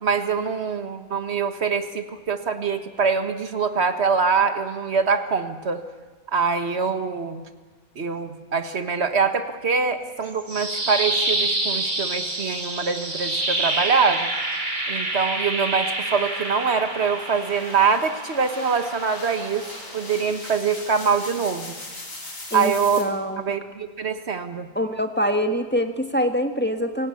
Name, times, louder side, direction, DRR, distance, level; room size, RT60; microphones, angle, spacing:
voice 1, 0.0-5.8 6.3-7.4 8.0-14.3 14.9-19.6 19.9-21.8 22.5-23.2 23.5-24.7, right 5 dB, 50° right, 8 dB, 1.7 m, -24 dB
sound 1, 10.2-20.3, right 2 dB, 30° right, 2.6 m, -28 dB
sound 2, 11.3-23.0, left 2 dB, 60° left, 4.1 m, -42 dB
voice 2, 23.0-23.4 24.7-27.1, equal, 5° left, 5 dB, 1.5 m, -24 dB
27.5 x 17.5 x 8.5 m, 1.4 s
omnidirectional pair, 1.5 m